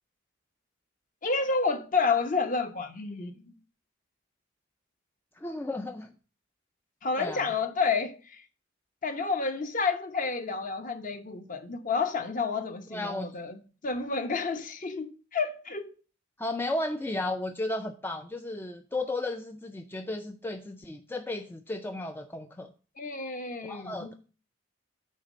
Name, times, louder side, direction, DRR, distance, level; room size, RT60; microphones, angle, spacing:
voice 1, 1.2-3.5 7.0-8.4 9.0-15.9 23.0-24.1, left 4 dB, 40° left, 0.9 m, -30 dB
voice 2, 5.4-6.1 7.2-7.5 12.9-13.3 16.4-22.7 23.7-24.1, left 2 dB, 10° left, 0.4 m, -34 dB
9.0 x 3.2 x 6.1 m
head